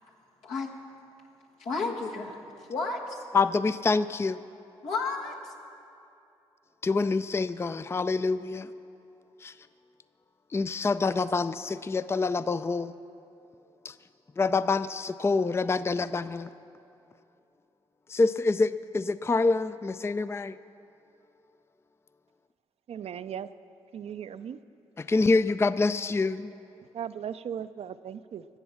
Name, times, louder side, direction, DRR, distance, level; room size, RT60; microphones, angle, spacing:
voice 1, 1.6-2.4 2.7-3.2 4.8-5.5, left 4 dB, 80° left, 1.7 m, -32 dB
voice 2, 3.3-4.4 6.8-8.7 9.4-9.5 10.5-12.9 14.4-16.5 18.1-20.5 25.1-26.5, left 3 dB, 20° left, 0.4 m, -26 dB
voice 3, 22.9-23.5 23.9-24.6 26.9-28.5, right 8 dB, 60° right, 0.5 m, -37 dB
19.0 x 7.0 x 7.2 m
supercardioid pair, 45°, 12 cm